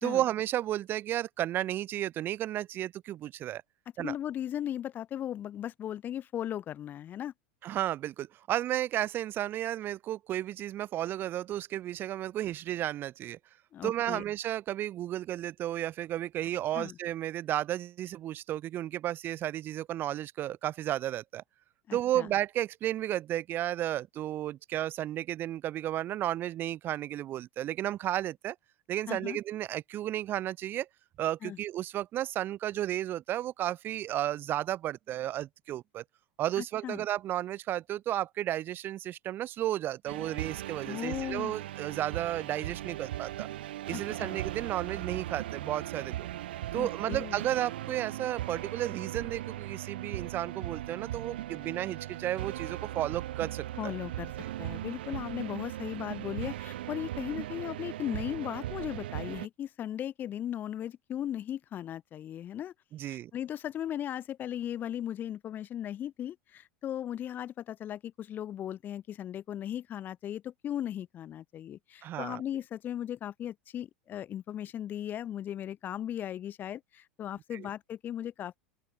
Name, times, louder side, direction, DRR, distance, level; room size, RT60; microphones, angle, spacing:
voice 1, 0.0-3.6 4.0-4.1 7.6-13.4 13.8-21.4 21.9-28.6 28.9-30.9 31.2-36.0 36.4-43.5 43.9-46.3 46.7-53.9 54.4-54.5 62.9-63.3 72.0-72.4 77.5-77.7, right 13 dB, 35° right, 3.9 m, -33 dB
voice 2, 4.0-7.3 13.7-14.2 16.7-17.0 21.9-22.3 29.1-29.4 31.4-31.6 36.6-37.0 40.8-41.5 43.9-44.4 46.7-47.4 53.8-54.3 54.6-62.7 63.0-78.6, left 10 dB, 30° left, 3.9 m, -37 dB
sound 1, 40.1-59.5, right 14 dB, 60° right, 6.9 m, -38 dB
open air
figure-of-eight pair, 80°, 6 cm